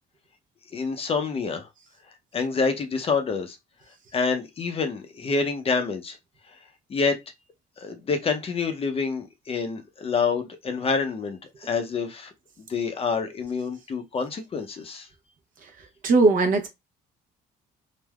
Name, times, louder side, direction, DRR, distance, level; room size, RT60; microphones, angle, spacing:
voice 1, 0.7-1.7 2.3-3.6 4.1-6.2 6.9-7.2 7.8-12.3 12.7-15.1, left 5 dB, 35° left, 0.6 m, -27 dB
voice 2, 16.0-16.7, right 3 dB, 50° right, 0.8 m, -18 dB
3.4 x 2.1 x 2.3 m
cardioid pair, 110°, 17 cm